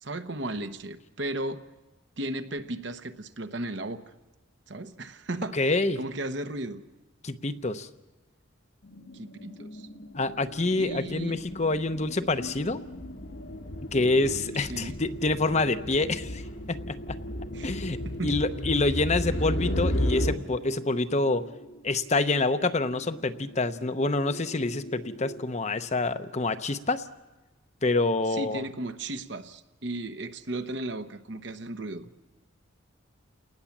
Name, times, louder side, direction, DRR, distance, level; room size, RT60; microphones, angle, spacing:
voice 1, 0.0-1.6 2.2-4.0 4.7-6.8 9.1-9.9 10.8-11.4 14.5-15.0 17.5-18.4 28.3-32.1, right 1 dB, 60° right, 9 dB, 1.1 m, -35 dB
voice 2, 5.5-6.0 7.2-7.9 10.1-12.8 13.9-16.4 16.7-17.2 17.6-18.0 18.2-21.4 21.8-27.0 27.8-28.6, left 2 dB, 35° left, 10 dB, 0.8 m, -27 dB
sound 1, 8.8-25.5, equal, 75° left, 1.6 m, -44 dB
sound 2, 11.1-11.5 11.7-20.4, equal, 60° left, 1.4 m, -33 dB
30.0 x 19.0 x 7.3 m, 1.2 s
head